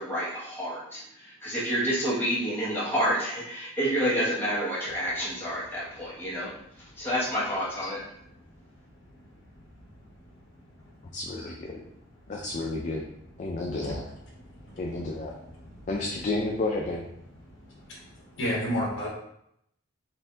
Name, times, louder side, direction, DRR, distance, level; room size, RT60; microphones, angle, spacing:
voice 1, 0.0-6.5 7.0-8.0, equal, 10° left, -8 dB, 1.2 m, -29 dB
voice 2, 11.1-11.8 12.3-13.0 13.4-14.0 14.8-15.3 15.9-17.0, left 2 dB, 35° left, 0 dB, 0.4 m, -31 dB
voice 3, 18.4-19.1, equal, 65° left, -3 dB, 1.3 m, -29 dB
4.3 x 2.6 x 3.8 m, 0.75 s
head